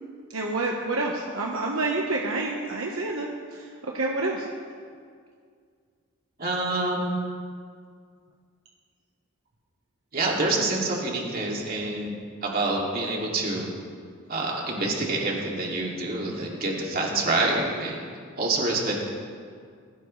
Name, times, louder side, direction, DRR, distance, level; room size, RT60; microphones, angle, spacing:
voice 1, 0.3-4.5, right 2 dB, 70° right, -1 dB, 1.3 m, -28 dB
voice 2, 6.4-7.1 10.1-13.7 14.3-18.1 18.4-19.1, right 2 dB, 45° right, -2 dB, 2.7 m, -27 dB
20.0 x 16.5 x 3.3 m, 2.1 s
head